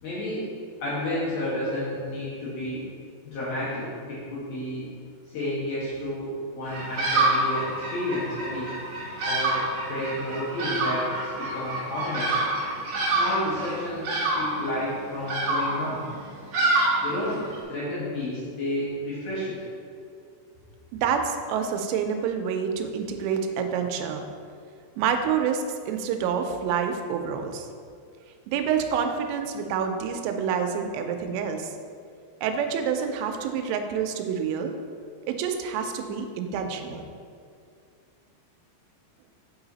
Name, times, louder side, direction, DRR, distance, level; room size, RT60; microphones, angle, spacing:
voice 1, 0.0-0.4 0.8-2.8 3.2-4.9 5.3-8.7 9.2-12.4 13.0-16.0 17.0-17.4 17.7-19.6, left 1 dB, 80° left, -8 dB, 1.8 m, -31 dB
Bird vocalization bird call bird song, 6.6-17.6, right 2 dB, 55° right, 1.8 m, -27 dB
voice 2, 20.9-24.3 25.0-27.7 28.5-31.8 32.4-34.7 35.3-37.0, right 7 dB, 85° right, 5 dB, 3.0 m, -27 dB
7.9 x 4.8 x 3.9 m, 2.3 s
omnidirectional pair, 5.9 m